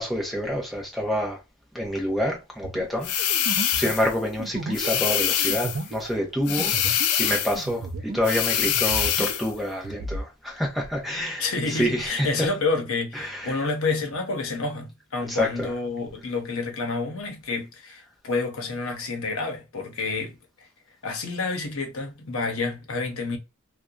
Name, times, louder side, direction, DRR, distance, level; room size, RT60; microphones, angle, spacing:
voice 1, 0.0-1.4 1.7-3.4 3.8-6.7 7.2-12.5 13.1-13.6 15.3-15.7, equal, ahead, 0.8 m, -27 dB
sound 1, 2.6-8.4 8.6-10.3, right 3 dB, 50° right, 0.4 m, -35 dB
sound 2, 3.0-4.1 4.7-5.8 6.5-7.6 8.2-9.5, left 9 dB, 85° left, 0.5 m, -24 dB
voice 2, 11.4-20.4 21.0-23.4, left 3 dB, 65° left, 0.9 m, -29 dB
2.7 x 2.2 x 2.2 m
head